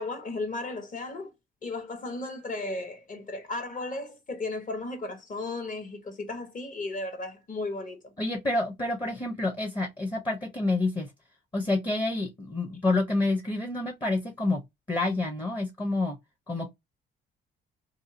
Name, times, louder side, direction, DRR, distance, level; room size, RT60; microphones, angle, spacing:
voice 1, 0.0-1.3 1.6-8.1, left 2 dB, 40° left, 1.1 m, -35 dB
voice 2, 8.2-11.1 11.5-14.6 14.9-16.2 16.5-16.7, left 2 dB, 20° left, 0.8 m, -28 dB
2.7 x 2.3 x 2.6 m
cardioid pair, 90°, 20 cm